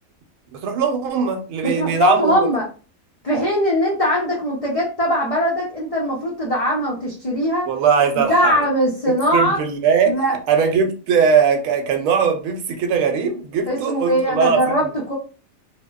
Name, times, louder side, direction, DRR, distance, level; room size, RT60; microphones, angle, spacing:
voice 1, 0.5-2.5 7.7-8.5 9.1-10.1 10.5-14.9, right 6 dB, 75° right, 0.9 m, -20 dB
voice 2, 1.6-2.7 3.2-7.7 8.2-9.6 10.0-10.3 13.7-15.1, equal, 70° left, 0.3 m, -20 dB
2.7 x 2.0 x 2.2 m
omnidirectional pair, 1.5 m